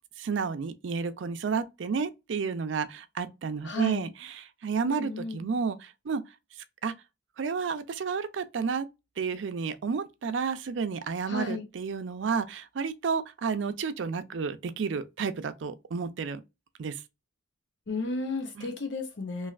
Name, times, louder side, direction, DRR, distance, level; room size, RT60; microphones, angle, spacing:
voice 1, 0.2-6.2 6.8-6.9 7.4-8.9 9.2-16.4 16.8-17.0 18.6-18.7, right 5 dB, 80° right, 0.4 m, -31 dB
voice 2, 3.6-4.1 4.8-5.5 11.3-11.7 17.9-19.5, left 2 dB, 70° left, 0.8 m, -33 dB
3.2 x 2.5 x 2.4 m
head